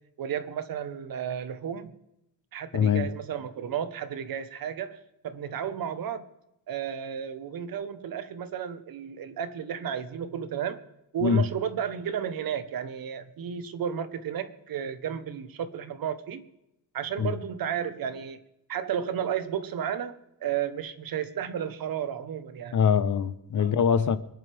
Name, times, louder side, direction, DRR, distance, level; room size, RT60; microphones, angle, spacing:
voice 1, 0.2-1.9 2.5-6.2 6.7-10.8 11.1-16.4 16.9-18.4 18.7-22.8 23.6-23.8, right 8 dB, 60° right, 1.2 m, -33 dB
voice 2, 2.7-3.1 11.2-11.4 17.2-17.3 22.7-24.2, left 7 dB, 50° left, 0.9 m, -23 dB
25.0 x 11.0 x 3.5 m
cardioid pair, 165°, 39 cm